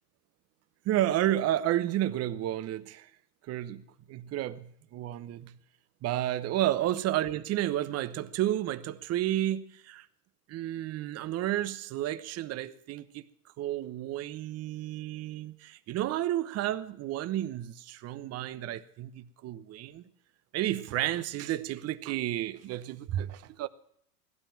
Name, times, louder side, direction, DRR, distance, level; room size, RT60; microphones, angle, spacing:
voice 1, 0.8-3.1 3.5-5.6 6.0-10.1 10.5-13.2 13.6-20.0 20.5-23.7, right 13 dB, 35° right, 1.0 m, -31 dB
17.5 x 12.5 x 5.9 m
hypercardioid pair, 95°, 45 cm